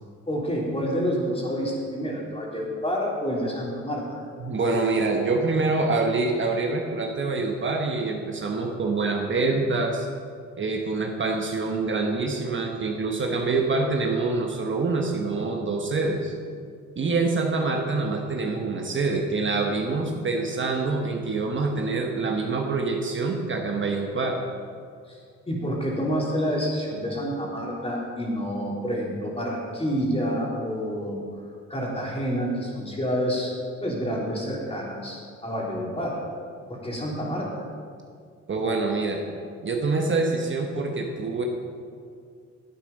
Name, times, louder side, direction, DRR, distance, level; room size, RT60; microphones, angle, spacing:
voice 1, 0.3-4.2 25.1-25.2 25.5-31.2 31.7-33.5 33.8-36.2 36.7-37.6, equal, 20° left, -3 dB, 3.2 m, -28 dB
voice 2, 4.4-10.1 10.6-16.3 17.0-24.4 38.5-39.2 39.6-41.4, right 3 dB, 40° right, 1 dB, 1.2 m, -25 dB
11.0 x 8.6 x 5.4 m, 2.2 s
cardioid pair, 90°, 30 cm